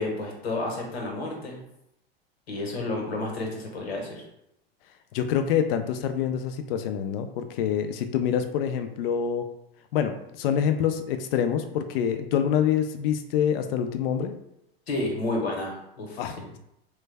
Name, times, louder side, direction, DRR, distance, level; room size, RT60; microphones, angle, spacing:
voice 1, 0.0-1.6 2.5-4.2 14.9-16.3, left 2 dB, 90° left, 0 dB, 1.1 m, -31 dB
voice 2, 5.1-9.4 9.9-14.3 16.2-16.4, left 8 dB, 70° left, 8 dB, 0.5 m, -26 dB
3.2 x 2.2 x 3.3 m, 0.82 s
hypercardioid pair, 105°, 30 cm